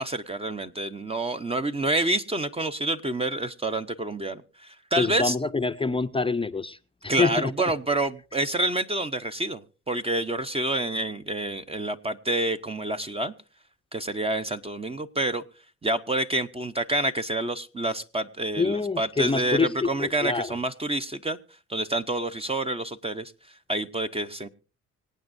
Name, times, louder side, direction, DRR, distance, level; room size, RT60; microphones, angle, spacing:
voice 1, 0.0-5.4 7.1-13.3 13.9-15.4 15.8-21.4 21.7-23.3 23.7-24.5, right 2 dB, 20° right, 0.7 m, -28 dB
voice 2, 5.0-6.8 7.0-7.5 18.6-20.6, left 4 dB, 20° left, 0.6 m, -26 dB
25.5 x 8.8 x 2.6 m
cardioid pair, 90°, 30 cm